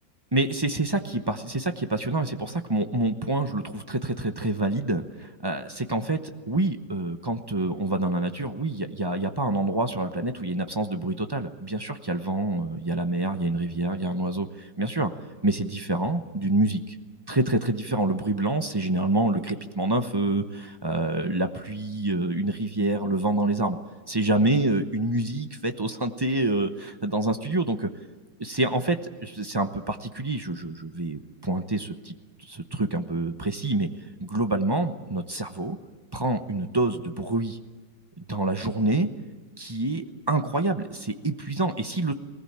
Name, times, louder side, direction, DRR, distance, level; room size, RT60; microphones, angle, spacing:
voice 1, 0.3-15.1 15.4-16.9 17.3-23.8 24.1-27.9 28.4-32.1 32.4-33.9 34.2-35.8 36.1-37.6 38.2-39.1 39.6-42.1, right 2 dB, 20° right, 8 dB, 0.7 m, -27 dB
20.0 x 19.0 x 8.8 m, 1.4 s
omnidirectional pair, 1.9 m